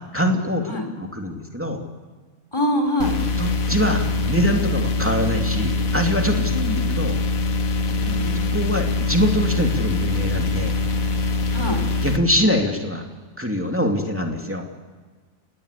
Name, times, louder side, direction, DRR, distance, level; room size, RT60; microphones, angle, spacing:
voice 1, 0.1-0.7 1.0-1.8 3.4-6.5 6.9-7.2 8.3-10.8 12.0-13.0 13.4-14.6, equal, 10° right, 2 dB, 2.7 m, -23 dB
voice 2, 2.5-3.2 6.5-6.9 8.0-8.4 11.5-11.8, left 1 dB, 20° left, 4 dB, 4.3 m, -24 dB
sound 1, 3.0-12.2, left 3 dB, 75° left, 1.7 m, -23 dB
30.0 x 18.5 x 8.4 m, 1.4 s
omnidirectional pair, 1.4 m